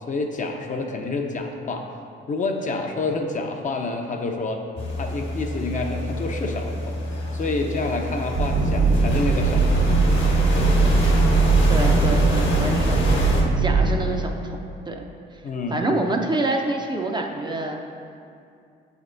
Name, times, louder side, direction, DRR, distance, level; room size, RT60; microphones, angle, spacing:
voice 1, 0.0-1.9 2.3-4.6 5.0-6.7 7.3-9.7 15.4-15.8, left 3 dB, 40° left, 3 dB, 0.6 m, -28 dB
sound 1, 4.8-13.4, left 1 dB, 60° left, 1.1 m, -28 dB
sound 2, 8.3-13.9, right 3 dB, 60° right, 1.0 m, -19 dB
voice 2, 11.7-14.6 14.9-15.4 15.7-17.8, right 2 dB, 20° right, 2 dB, 0.5 m, -27 dB
7.3 x 3.4 x 3.8 m, 2.4 s
cardioid pair, 90°, 20 cm